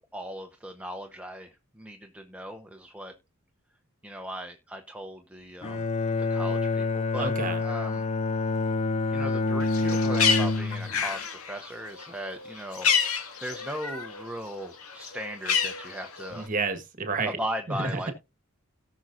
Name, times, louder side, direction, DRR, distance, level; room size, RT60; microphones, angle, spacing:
voice 1, 0.0-1.5 1.8-3.1 4.0-5.9 6.3-7.3 7.6-8.0 9.1-12.9 13.4-16.5 17.3-18.1, equal, 5° right, 0.7 m, -38 dB
Bowed string instrument, 5.6-11.1, left 3 dB, 30° left, 0.4 m, -27 dB
voice 2, 7.2-7.6 16.3-17.4 17.7-18.1, right 3 dB, 35° right, 1.5 m, -30 dB
Bird, 9.6-14.2 14.5-16.4, left 6 dB, 80° left, 1.9 m, -28 dB
18.0 x 6.2 x 2.6 m
head